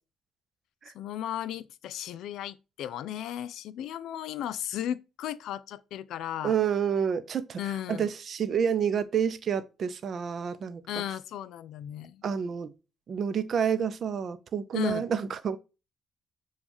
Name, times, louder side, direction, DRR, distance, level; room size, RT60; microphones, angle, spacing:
voice 1, 0.9-6.5 7.6-8.1 10.9-12.2 14.7-15.1, left 11 dB, 80° left, 0.3 m, -35 dB
voice 2, 6.4-7.6 7.9-10.8 12.2-12.7 13.1-15.6, right 7 dB, 55° right, 0.6 m, -29 dB
7.0 x 2.4 x 3.0 m
cardioid pair, 75°, 0 cm